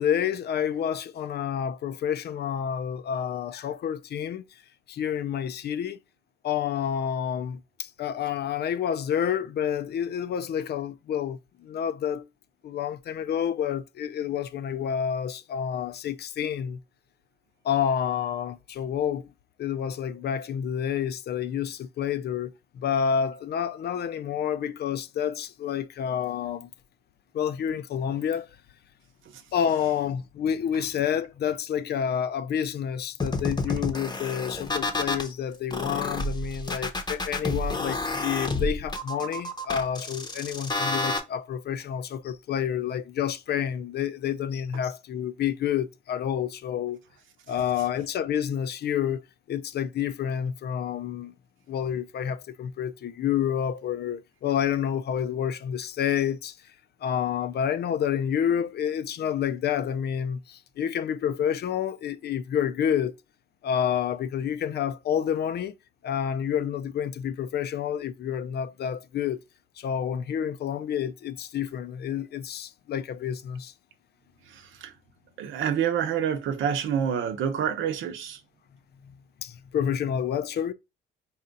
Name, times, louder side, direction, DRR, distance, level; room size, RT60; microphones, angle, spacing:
voice 1, 0.0-4.4 4.9-6.0 6.4-12.3 12.6-16.8 17.6-19.3 19.6-26.7 27.3-28.5 29.5-47.0 47.5-51.3 51.7-56.6 57.0-63.1 63.6-65.7 66.0-69.4 69.8-73.7 79.4-80.7, left 8 dB, 55° left, 0.5 m, -29 dB
sound 1, 33.2-35.3 35.7-41.2, left 2 dB, 20° left, 0.8 m, -29 dB
voice 2, 75.4-78.4, right 8 dB, 80° right, 0.8 m, -27 dB
4.2 x 2.4 x 3.9 m
cardioid pair, 90°, 20 cm